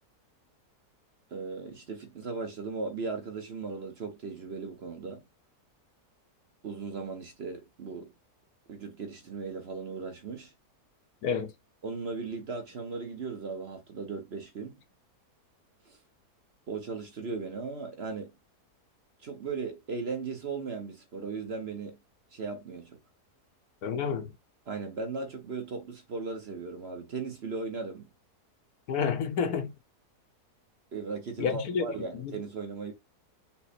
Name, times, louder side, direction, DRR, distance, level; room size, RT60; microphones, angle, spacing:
voice 1, 1.3-5.2 6.6-8.1 8.7-10.5 11.8-14.8 15.8-16.0 16.7-18.3 19.2-22.0 22.3-23.0 24.7-28.1 30.9-32.9, right 4 dB, 50° right, 0.9 m, -37 dB
voice 2, 23.8-24.3 28.9-29.7 31.4-31.8 32.2-32.3, left 6 dB, 70° left, 1.2 m, -29 dB
5.8 x 2.1 x 4.2 m
omnidirectional pair, 1.7 m